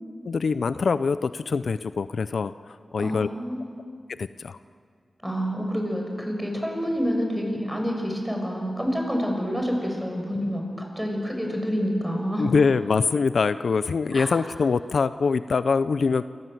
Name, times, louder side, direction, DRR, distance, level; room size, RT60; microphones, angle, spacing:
voice 1, 0.2-3.3 4.1-4.6 12.4-16.2, left 5 dB, 75° left, 13 dB, 0.6 m, -24 dB
voice 2, 3.0-3.7 5.2-12.5 14.1-14.3, equal, 5° right, 1 dB, 6.7 m, -28 dB
28.0 x 26.0 x 7.9 m, 2.2 s
wide cardioid pair, 95°, 0 cm